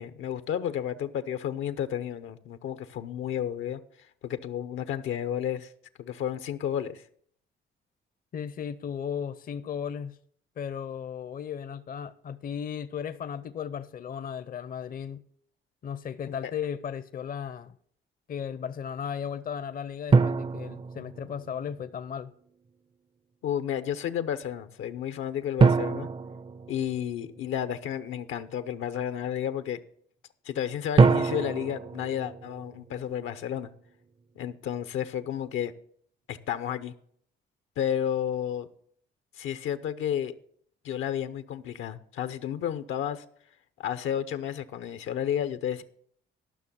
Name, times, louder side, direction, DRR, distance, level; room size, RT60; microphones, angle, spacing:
voice 1, 0.0-3.8 4.2-5.7 6.0-7.0 16.3-16.5 23.4-26.1 26.7-29.8 30.5-33.7 34.4-35.7 36.3-36.9 37.8-38.7 39.4-40.3 40.8-43.2 43.8-45.8, left 9 dB, 80° left, 0.8 m, -32 dB
voice 2, 8.3-10.2 10.6-15.2 15.8-17.8 18.3-22.3, left 8 dB, 45° left, 0.6 m, -35 dB
sound 1, 20.1-21.7 25.6-27.5 31.0-33.2, right 4 dB, 25° right, 0.5 m, -25 dB
12.5 x 5.9 x 7.0 m
cardioid pair, 90°, 20 cm